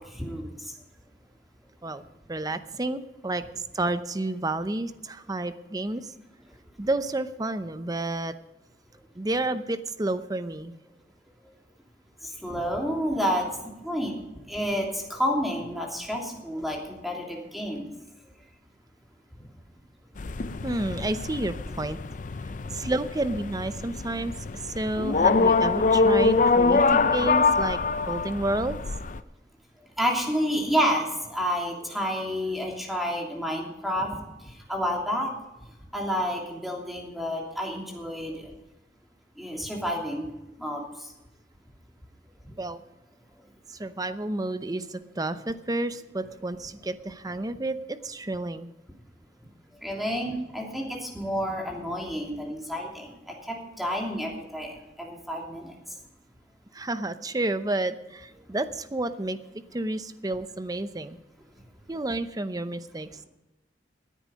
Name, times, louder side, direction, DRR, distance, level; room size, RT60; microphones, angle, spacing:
voice 1, 0.2-0.5 12.4-13.4 13.8-14.1 14.5-17.9 30.0-31.0 31.3-34.1 34.7-35.3 35.9-38.3 39.4-40.3 40.6-40.8 49.8-55.7, equal, ahead, -1 dB, 2.9 m, -29 dB
voice 2, 2.3-6.1 6.8-8.3 9.1-10.8 20.6-22.0 22.7-24.3 24.6-27.8 28.1-28.8 42.6-42.8 43.7-48.7 56.7-59.4 59.7-61.2 61.9-63.1, right 2 dB, 20° right, 11 dB, 0.7 m, -30 dB
sound 1, 20.2-29.2, left 4 dB, 45° left, 0.5 m, -24 dB
18.0 x 10.0 x 5.2 m, 0.99 s
head